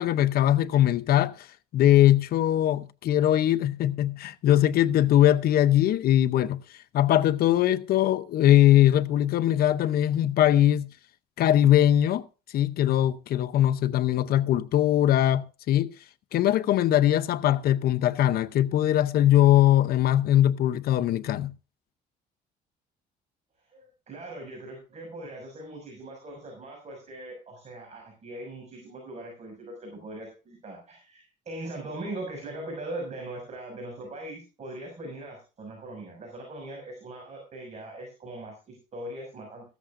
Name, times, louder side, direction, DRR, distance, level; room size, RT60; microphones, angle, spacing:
voice 1, 0.0-1.5 1.7-6.6 6.9-10.9 11.4-12.2 12.5-15.9 16.3-21.5, left 12 dB, 65° left, 0.7 m, -21 dB
voice 2, 23.6-39.7, right 1 dB, 40° right, 6.3 m, -40 dB
15.5 x 13.5 x 2.6 m
cardioid pair, 110°, 17 cm